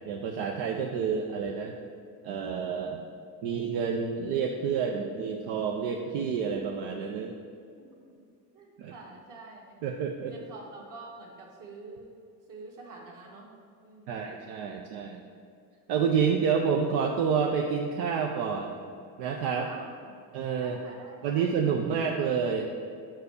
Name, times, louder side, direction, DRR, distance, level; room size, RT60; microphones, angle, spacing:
voice 1, 0.1-1.7 2.2-3.0 3.4-7.3 8.8-8.9 9.8-10.4 14.1-15.2 15.9-18.7 19.2-19.7 20.3-20.8 21.2-22.7, right 6 dB, 80° right, 2 dB, 0.7 m, -29 dB
voice 2, 7.9-8.2 8.5-9.9 10.3-12.1 12.5-13.5 13.8-14.4 19.5-20.1 20.6-21.7, right 3 dB, 55° right, -1 dB, 1.8 m, -48 dB
5.7 x 4.7 x 6.4 m, 2.3 s
supercardioid pair, 90°, 38 cm